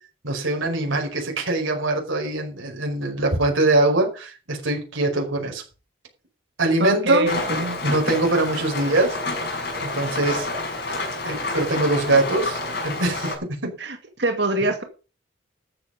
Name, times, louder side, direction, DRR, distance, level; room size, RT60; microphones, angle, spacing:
voice 1, 0.2-5.6 6.6-7.3 7.8-9.2 9.8-10.5 11.2-13.3 13.6-13.8, right 2 dB, 85° right, 1 dB, 5.3 m, -22 dB
voice 2, 6.8-7.8 13.8-14.8, right 1 dB, 60° right, 6 dB, 2.2 m, -24 dB
Rain, 7.2-13.3, left 2 dB, 55° left, 5.8 m, -29 dB
13.5 x 8.8 x 5.4 m, 0.34 s
head